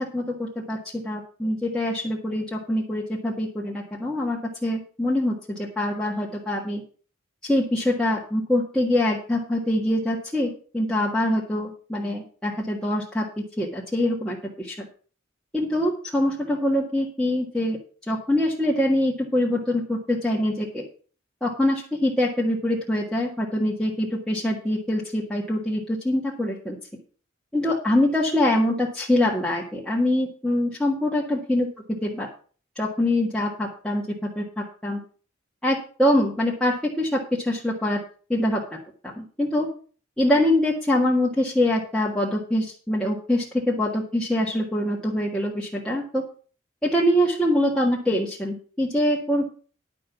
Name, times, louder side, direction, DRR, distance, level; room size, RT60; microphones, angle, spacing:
voice 1, 0.1-0.8 1.0-6.8 7.4-13.2 13.6-14.8 15.5-17.8 18.1-20.8 21.4-26.8 27.5-31.7 32.0-32.3 32.7-34.0 34.3-35.0 35.6-38.0 38.3-38.6 39.2-39.7 40.2-46.2 46.8-49.5, left 1 dB, 5° left, -5 dB, 1.6 m, -24 dB
11.0 x 5.3 x 7.1 m, 0.41 s
head